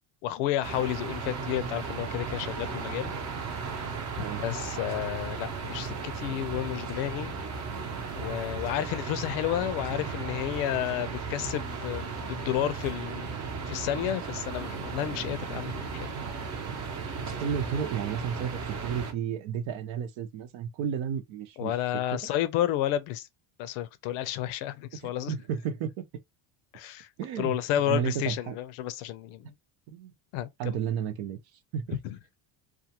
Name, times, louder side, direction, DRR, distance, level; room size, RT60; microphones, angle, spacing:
voice 1, 0.2-3.1 4.2-7.4 8.1-13.3 13.7-16.1 17.2-17.3 21.6-23.3 23.6-25.3 26.7-27.1 27.4-29.5 30.3-30.8 32.0-32.2, left 12 dB, 90° left, 0.6 m, -31 dB
sound 1, 0.6-19.1, right 5 dB, 35° right, 0.7 m, -35 dB
voice 2, 17.4-21.8 22.1-22.2 25.0-26.0 27.2-27.6 27.9-28.6 29.9-30.1 30.6-32.0, right 7 dB, 75° right, 0.8 m, -32 dB
2.4 x 2.3 x 2.8 m
cardioid pair, 105°, 49 cm